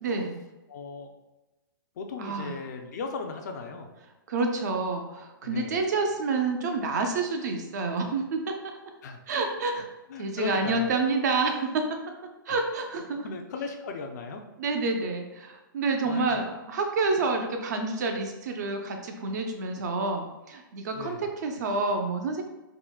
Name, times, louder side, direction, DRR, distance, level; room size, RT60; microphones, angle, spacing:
voice 1, 0.0-0.4 2.2-2.6 4.3-8.8 9.3-9.9 10.2-12.0 12.5-13.3 14.6-22.4, right 3 dB, 50° right, 4 dB, 0.4 m, -28 dB
voice 2, 0.7-1.1 2.0-3.9 5.4-5.8 9.0-9.2 10.1-10.9 12.5-12.6 13.1-14.4 16.0-16.4 20.9-21.3, left 5 dB, 50° left, 4 dB, 0.4 m, -37 dB
3.7 x 2.0 x 2.2 m, 1.1 s
hypercardioid pair, 165°, 12 cm